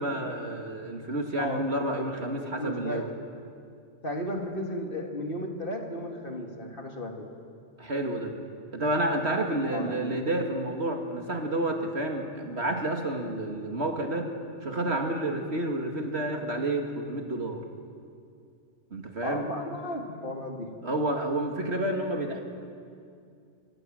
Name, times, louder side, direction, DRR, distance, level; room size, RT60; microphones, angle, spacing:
voice 1, 0.0-3.1 7.8-8.3 8.7-14.3 14.6-17.6 18.9-19.5 20.8-22.4, right 1 dB, 60° right, 3 dB, 2.5 m, -30 dB
voice 2, 1.4-2.1 2.4-3.1 4.0-7.3 9.7-10.1 19.2-20.7, left 1 dB, 45° left, 2 dB, 2.7 m, -35 dB
26.5 x 22.5 x 7.8 m, 2.4 s
omnidirectional pair, 1.2 m